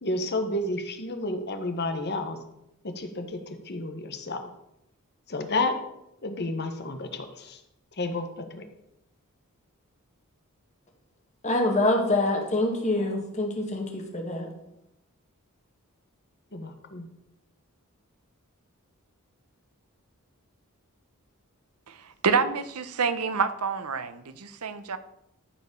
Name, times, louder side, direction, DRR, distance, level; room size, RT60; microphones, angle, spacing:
voice 1, 0.0-2.4 2.8-4.4 5.3-5.7 6.2-7.6 8.0-8.3 8.5-8.6 16.5-17.1, left 2 dB, 50° left, 1.3 m, -31 dB
voice 2, 11.4-14.5, left 2 dB, 30° left, 2.0 m, -25 dB
voice 3, 21.9-25.0, right 5 dB, 90° right, 0.9 m, -28 dB
13.5 x 5.0 x 6.8 m
head